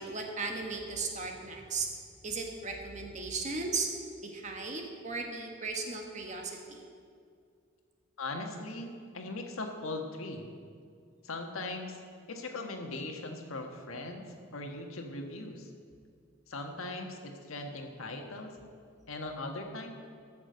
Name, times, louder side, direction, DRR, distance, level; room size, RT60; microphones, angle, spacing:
voice 1, 0.0-1.9 2.2-3.9 4.2-6.8, right 4 dB, 35° right, 2 dB, 1.4 m, -36 dB
voice 2, 8.2-10.5 11.2-12.0 12.3-15.7 16.5-18.6 19.1-19.9, left 2 dB, 90° left, 3 dB, 1.4 m, -39 dB
13.5 x 6.2 x 8.0 m, 2.2 s
head